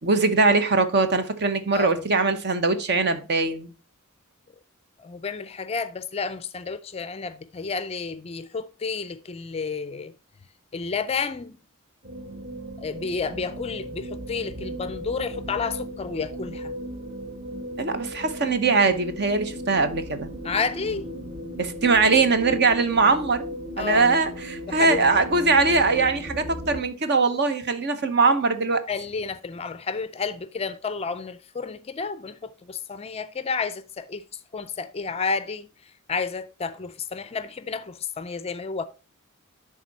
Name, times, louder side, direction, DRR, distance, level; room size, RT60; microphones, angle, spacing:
voice 1, 0.0-3.7 17.8-20.3 21.6-23.4 23.8-28.8, right 3 dB, 50° right, 0.9 m, -21 dB
voice 2, 1.7-2.0 5.0-10.1 10.7-11.6 12.8-16.7 20.4-21.1 23.8-24.1 24.7-25.0 28.9-35.7 36.1-38.9, left 5 dB, 30° left, 0.4 m, -31 dB
sound 1, 12.0-26.8, equal, 35° right, 1.2 m, -36 dB
10.5 x 3.8 x 4.1 m
head